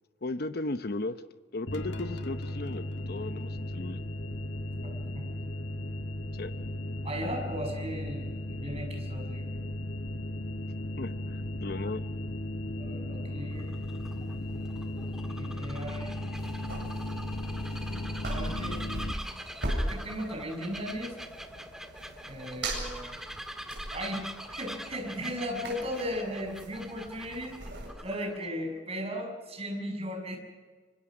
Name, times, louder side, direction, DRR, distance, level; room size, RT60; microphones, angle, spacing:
voice 1, 0.2-1.2 1.5-4.0 6.3-6.5 11.0-12.0, left 2 dB, 60° left, 10 dB, 0.9 m, -36 dB
sound 1, 1.7-19.1, left 1 dB, 80° left, 1.8 m, -36 dB
voice 2, 4.8-5.3 7.0-9.5 12.8-13.7 15.2-16.1 18.2-18.8 19.7-21.2 22.2-23.1 23.9-27.6 28.0-30.4, equal, 35° right, 2 dB, 6.9 m, -37 dB
Bird vocalization bird call bird song, 13.4-28.5, equal, 5° right, 1.8 m, -44 dB
sound 2, 16.3-27.9, right 1 dB, 70° right, 7.6 m, -40 dB
26.0 x 25.0 x 6.3 m, 1.4 s
head